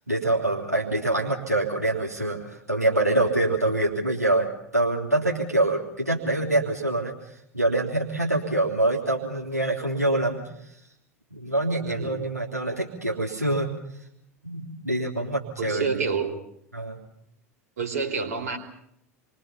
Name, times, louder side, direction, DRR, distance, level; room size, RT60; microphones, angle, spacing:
voice 1, 0.1-7.1 7.5-10.4 11.3-13.7 14.4-16.0 16.7-17.0, right 2 dB, 90° right, -3 dB, 3.3 m, -25 dB
voice 2, 15.2-16.3 17.8-18.6, right 5 dB, 65° right, 5 dB, 4.0 m, -29 dB
29.0 x 23.5 x 5.8 m, 0.74 s
figure-of-eight pair, 80°, 8 cm